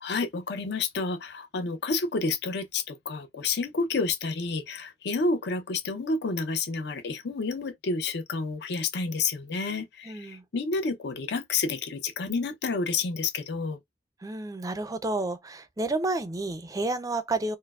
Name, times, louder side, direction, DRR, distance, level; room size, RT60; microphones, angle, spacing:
voice 1, 0.0-13.8, left 4 dB, 60° left, 0.6 m, -30 dB
voice 2, 10.1-10.4 14.2-17.6, right 2 dB, 20° right, 0.4 m, -30 dB
4.4 x 2.0 x 2.3 m
head